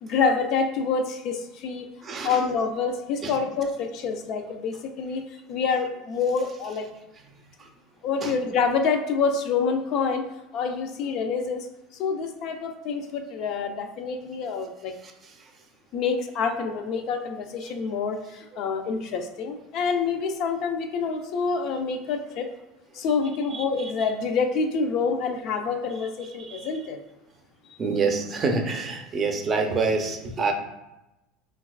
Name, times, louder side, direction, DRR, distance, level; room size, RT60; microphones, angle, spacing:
voice 1, 0.0-1.9 2.2-5.2 5.5-6.9 8.0-10.2 10.5-11.7 11.9-14.9 15.9-22.5 22.9-27.0, left 5 dB, 60° left, 5 dB, 0.4 m, -27 dB
voice 2, 2.0-2.4 3.2-3.4 8.2-8.3 26.5-26.7 27.8-30.5, right 4 dB, 35° right, 4 dB, 0.5 m, -26 dB
3.9 x 2.3 x 2.3 m, 0.95 s
supercardioid pair, 95°, 0 cm